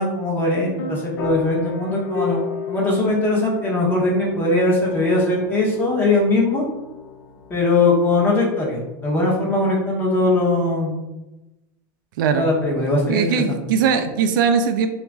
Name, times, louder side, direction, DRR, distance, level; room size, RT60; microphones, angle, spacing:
voice 1, 0.0-6.6 7.5-11.0 12.3-13.6, left 2 dB, 20° left, -3 dB, 0.7 m, -20 dB
sound 1, 0.8-8.9, left 6 dB, 80° left, 0.5 m, -34 dB
voice 2, 12.2-12.5 13.1-14.9, right 6 dB, 70° right, 7 dB, 0.4 m, -20 dB
2.9 x 2.4 x 3.4 m, 0.99 s
supercardioid pair, 155°, 11 cm